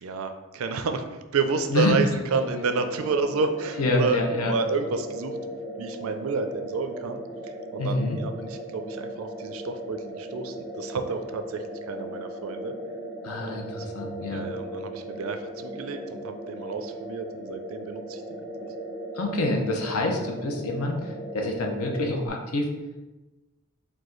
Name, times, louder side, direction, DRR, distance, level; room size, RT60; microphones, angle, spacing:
voice 1, 0.0-12.8 13.4-13.9 14.2-18.7, right 4 dB, 70° right, 7 dB, 0.4 m, -30 dB
sound 1, 2.3-22.3, right 1 dB, 5° right, 0.4 m, -37 dB
voice 2, 3.8-4.5 7.8-8.2 13.2-14.5 19.1-22.7, left 2 dB, 80° left, 2 dB, 0.7 m, -27 dB
4.7 x 2.3 x 3.8 m, 1.1 s
head